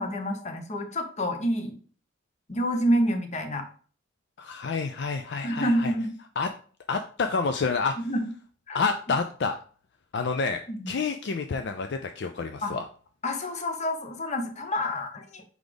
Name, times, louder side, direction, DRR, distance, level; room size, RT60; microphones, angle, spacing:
voice 1, 0.0-1.8 2.5-3.7 5.4-6.1 8.0-8.2 8.7-8.8 10.7-10.9 12.6-12.7 13.2-15.4, equal, 35° left, 6 dB, 0.9 m, -28 dB
voice 2, 4.4-5.9 6.4-6.5 6.9-7.9 8.7-9.6 10.1-12.8, left 4 dB, 60° left, 7 dB, 0.4 m, -28 dB
4.8 x 4.0 x 5.0 m, 0.42 s
head